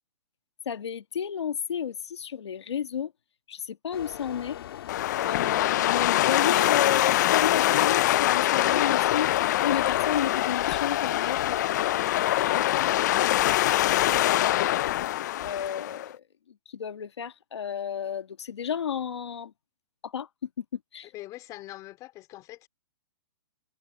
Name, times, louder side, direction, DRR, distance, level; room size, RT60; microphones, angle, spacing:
voice 1, 0.6-3.1 3.5-4.6 5.2-9.3 9.6-13.0 14.0-14.6 15.4-16.2 16.7-19.5 20.0-20.3 20.6-20.7 20.9-21.1, left 8 dB, 90° left, 1.5 m, -32 dB
sound 1, 3.9-15.1, left 11 dB, 60° left, 1.8 m, -41 dB
sound 2, 4.9-16.1, left 14 dB, 40° left, 0.4 m, -24 dB
voice 2, 21.1-22.7, left 16 dB, 25° left, 3.6 m, -43 dB
hypercardioid pair, 155°, 14 cm